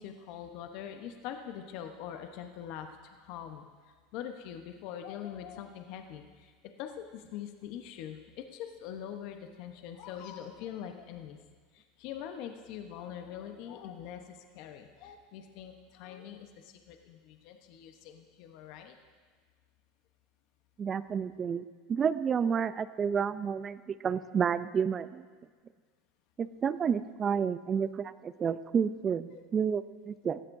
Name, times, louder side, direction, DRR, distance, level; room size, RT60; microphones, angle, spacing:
voice 1, 0.0-2.9 3.2-11.4 11.7-19.0, left 9 dB, 65° left, 6 dB, 0.9 m, -43 dB
voice 2, 20.8-21.6 21.9-25.3 26.4-30.4, right 7 dB, 30° right, 15 dB, 0.4 m, -30 dB
17.5 x 13.5 x 2.6 m, 1.5 s
supercardioid pair, 115°, 0 cm